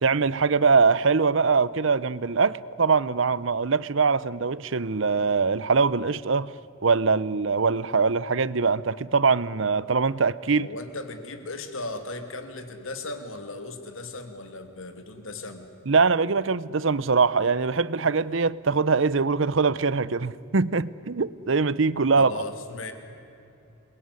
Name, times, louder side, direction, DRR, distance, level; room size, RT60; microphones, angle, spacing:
voice 1, 0.0-6.5 6.8-10.7 15.9-22.3, right 4 dB, 65° right, 0.7 m, -22 dB
voice 2, 10.6-15.7 22.1-22.9, left 2 dB, 75° left, 2.7 m, -37 dB
28.5 x 21.5 x 9.8 m
head